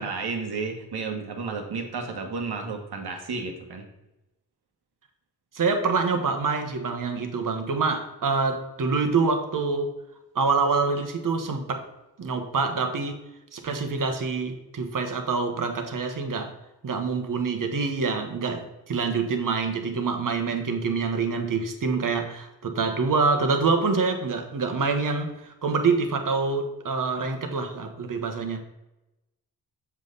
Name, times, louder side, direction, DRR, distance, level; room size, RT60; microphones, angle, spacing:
voice 1, 0.0-3.8, right 4 dB, 70° right, 3 dB, 1.5 m, -32 dB
voice 2, 5.5-9.9 10.3-11.9 12.2-13.2 13.5-16.5 16.8-28.6, right 4 dB, 50° right, 6 dB, 1.3 m, -26 dB
7.2 x 5.5 x 4.0 m, 0.97 s
cardioid pair, 75°, 40 cm